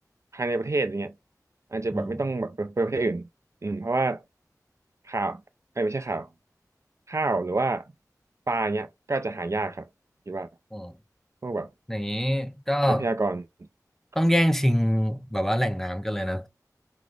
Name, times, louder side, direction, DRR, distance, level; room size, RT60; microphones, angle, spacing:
voice 1, 0.3-1.1 1.7-3.3 3.6-4.2 5.0-5.4 5.8-6.3 7.1-7.9 8.5-9.9 10.3-10.5 11.4-11.7 12.9-13.4, right 2 dB, 45° right, 0.4 m, -27 dB
voice 2, 11.9-13.1 14.2-16.5, equal, 5° left, 0.6 m, -25 dB
5.9 x 2.1 x 3.2 m
wide cardioid pair, 40°, 7 cm